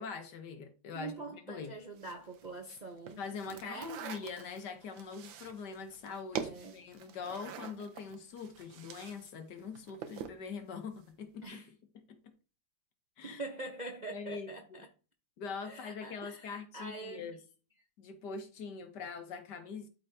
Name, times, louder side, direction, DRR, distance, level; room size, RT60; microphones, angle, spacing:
voice 1, 0.0-1.7 3.2-11.6 12.1-12.3 13.2-13.4 14.1-14.8 15.4-17.4 18.0-19.9, left 5 dB, 65° left, 1.6 m, -43 dB
voice 2, 0.9-3.2 3.5-4.1 6.3-6.7 11.4-11.7 13.2-14.9 15.6-17.3, right 2 dB, 45° right, 0.5 m, -44 dB
sound 1, 2.0-9.3 9.6-10.4, right 8 dB, 90° right, 1.6 m, -45 dB
12.5 x 4.4 x 2.7 m
omnidirectional pair, 2.0 m